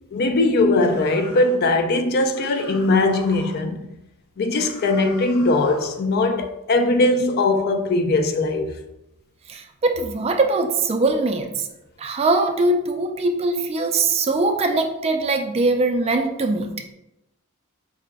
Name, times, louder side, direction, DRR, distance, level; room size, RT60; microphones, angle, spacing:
voice 1, 0.1-3.8 4.4-8.7, left 2 dB, 50° left, 0.4 m, -20 dB
sound 1, 0.8-1.6 2.3-3.6 4.5-6.0, left 1 dB, 85° left, 1.0 m, -43 dB
voice 2, 9.5-11.7 12.0-16.7, right 3 dB, 30° right, 0.4 m, -21 dB
4.8 x 2.1 x 3.4 m
head